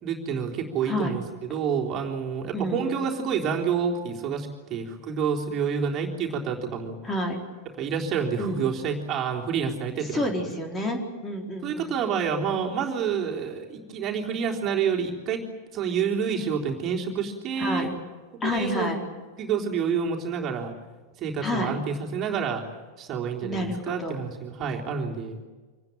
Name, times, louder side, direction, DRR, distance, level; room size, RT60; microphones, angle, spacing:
voice 1, 0.0-7.0 7.8-10.7 11.6-15.4 15.7-17.9 18.4-19.0 19.4-20.7 21.2-22.6 23.0-25.4, right 6 dB, 30° right, 0 dB, 3.7 m, -28 dB
voice 2, 0.8-1.2 2.5-3.0 7.0-7.4 8.4-8.8 10.1-12.0 17.6-17.9 18.4-19.0 21.4-21.7 23.4-24.2, left 1 dB, 20° left, 3 dB, 4.3 m, -29 dB
26.5 x 19.0 x 9.2 m, 1.4 s
figure-of-eight pair, 90°, 0 cm